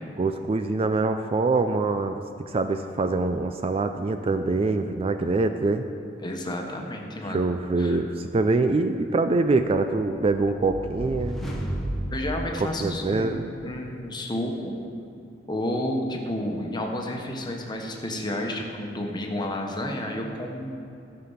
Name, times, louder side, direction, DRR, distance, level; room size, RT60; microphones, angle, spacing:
voice 1, 0.2-5.8 7.3-11.4 12.8-13.4, right 3 dB, 30° right, 8 dB, 0.3 m, -24 dB
voice 2, 6.2-7.5 7.8-8.0 12.1-14.7 15.5-20.9, left 1 dB, 25° left, 1 dB, 1.1 m, -31 dB
sound 1, 9.9-13.5, right 1 dB, ahead, 1.2 m, -33 dB
13.5 x 5.8 x 5.6 m, 2.6 s
head